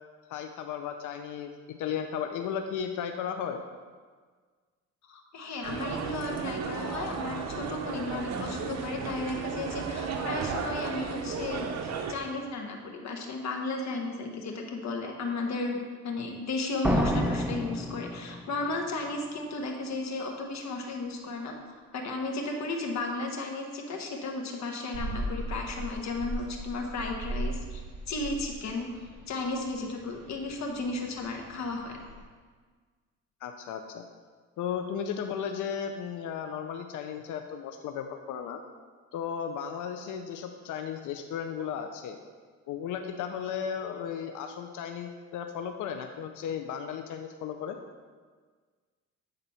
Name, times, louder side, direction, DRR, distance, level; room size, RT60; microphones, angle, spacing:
voice 1, 0.3-3.6 33.4-34.0 34.6-38.6 39.1-42.2 42.7-47.8, left 8 dB, 80° left, 6 dB, 0.6 m, -35 dB
voice 2, 5.1-11.7 12.1-21.5 21.9-27.8 28.1-28.9 29.3-32.0, left 3 dB, 65° left, 1 dB, 1.2 m, -34 dB
sound 1, 5.6-12.1, right 5 dB, 60° right, 0.9 m, -34 dB
sound 2, 16.8-18.7, equal, 5° right, 0.6 m, -29 dB
sound 3, 24.9-32.2, right 1 dB, 40° right, 2.3 m, -39 dB
8.8 x 3.9 x 5.6 m, 1.5 s
cardioid pair, 90°, 30 cm